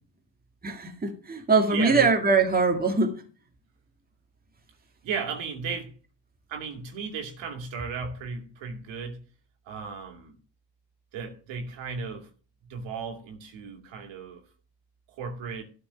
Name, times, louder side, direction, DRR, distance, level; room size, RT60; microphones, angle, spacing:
voice 1, 0.6-3.2, right 4 dB, 20° right, 1.9 m, -22 dB
voice 2, 1.7-2.1 5.0-5.9 6.5-9.2 9.7-10.4 11.1-12.3 12.7-14.4 15.1-15.6, right 5 dB, 65° right, 2.5 m, -35 dB
13.0 x 4.7 x 6.8 m
hypercardioid pair, 55°, 49 cm